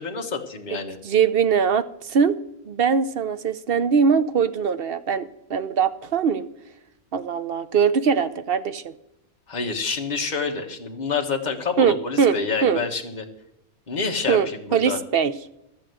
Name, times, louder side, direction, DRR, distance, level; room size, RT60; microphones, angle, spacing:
voice 1, 0.0-1.0 9.5-13.2 13.9-15.0, left 5 dB, 30° left, 2 dB, 1.5 m, -28 dB
voice 2, 1.0-2.4 2.7-6.5 7.1-8.9 11.8-12.8 14.3-15.3, right 6 dB, 50° right, 12 dB, 0.8 m, -21 dB
13.5 x 7.0 x 7.8 m, 0.84 s
omnidirectional pair, 1.5 m